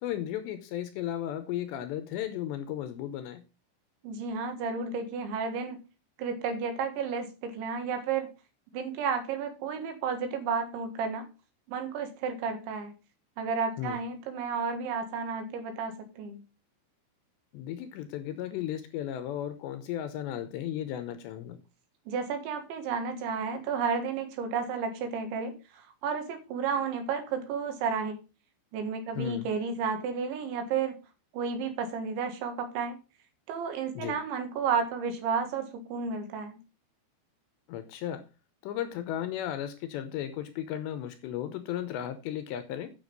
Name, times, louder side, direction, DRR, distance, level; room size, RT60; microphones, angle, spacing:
voice 1, 0.0-3.4 13.8-14.0 17.5-21.6 29.1-29.5 33.9-34.2 37.7-38.2 38.6-42.9, left 11 dB, 75° left, 10 dB, 2.8 m, -35 dB
voice 2, 4.0-5.8 6.2-8.3 8.7-11.3 11.7-12.9 13.4-16.4 22.1-25.6 26.0-28.2 28.7-31.0 31.3-33.0 33.5-36.6, right 5 dB, 75° right, 6 dB, 3.9 m, -32 dB
9.0 x 6.7 x 5.3 m, 0.30 s
omnidirectional pair, 5.6 m